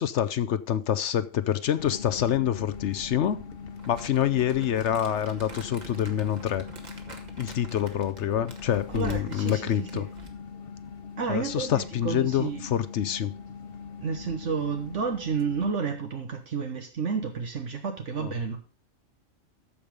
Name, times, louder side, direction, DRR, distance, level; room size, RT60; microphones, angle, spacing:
voice 1, 0.0-3.4 3.9-6.7 7.4-10.1 11.3-13.3 18.2-18.3, left 10 dB, 65° left, 0.9 m, -26 dB
sound 1, 1.8-15.7, left 5 dB, 50° left, 1.2 m, -41 dB
Crumpling crinkling, 3.8-10.4, right 2 dB, 35° right, 1.7 m, -47 dB
voice 2, 8.9-10.1 11.2-12.6 14.0-18.6, right 5 dB, 70° right, 1.5 m, -31 dB
14.0 x 5.2 x 5.2 m
omnidirectional pair, 1.3 m